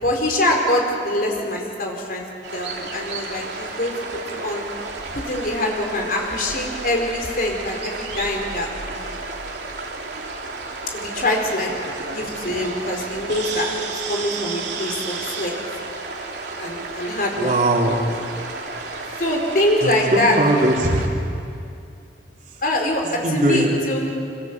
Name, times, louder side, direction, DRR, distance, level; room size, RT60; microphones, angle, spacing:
voice 1, 0.0-2.2 2.5-3.9 4.3-4.6 5.1-9.2 10.9-11.7 12.1-13.7 14.1-15.5 16.6-17.5 19.2-20.3 22.6-24.1, left 1 dB, 55° left, 1 dB, 4.5 m, -24 dB
sound 1, 2.4-21.1, right 3 dB, 80° right, 3.0 m, -32 dB
voice 2, 17.3-18.0 19.8-21.0 22.5-22.6 23.2-23.8, right 1 dB, 45° right, 0 dB, 3.8 m, -20 dB
27.0 x 26.5 x 7.6 m, 2.5 s
head